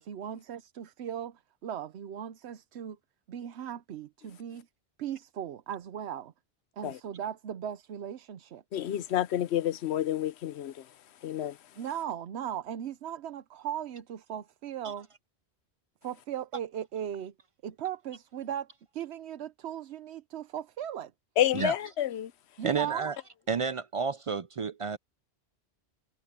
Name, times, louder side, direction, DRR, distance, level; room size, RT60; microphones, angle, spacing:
voice 1, 0.0-3.0 3.3-4.7 5.0-6.3 6.8-8.6 11.8-15.1 16.0-17.3 17.6-21.1 22.6-23.1, right 10 dB, 80° right, 1.0 m, -38 dB
voice 2, 8.7-10.9 11.2-11.6 21.4-22.3, left 11 dB, 80° left, 0.9 m, -29 dB
voice 3, 22.6-23.1 23.5-25.0, right 5 dB, 50° right, 0.4 m, -30 dB
omnidirectional pair, 1.1 m